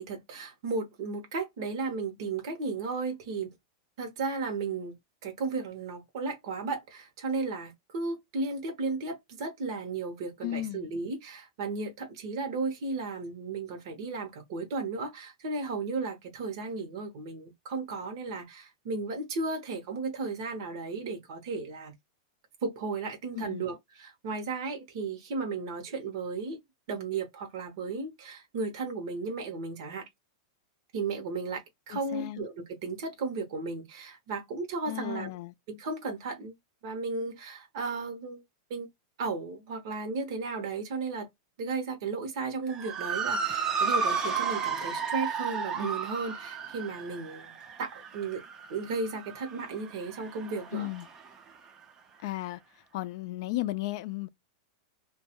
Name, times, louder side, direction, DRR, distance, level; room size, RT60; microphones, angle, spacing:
voice 1, 0.0-3.5 4.0-5.0 5.2-21.9 22.6-26.6 26.9-30.1 30.9-35.3 35.7-36.6 36.8-38.4 38.7-38.9 39.2-41.3 41.6-48.4 48.7-50.9, right 4 dB, 60° right, 0.9 m, -34 dB
voice 2, 10.4-10.9 23.4-23.6 31.9-32.5 34.9-35.5 50.7-51.1 52.2-52.6 52.9-54.3, left 16 dB, 60° left, 0.3 m, -34 dB
Motor vehicle (road) / Siren, 42.7-51.3, right 5 dB, 25° right, 0.5 m, -33 dB
2.3 x 2.1 x 2.8 m
supercardioid pair, 140°, 3 cm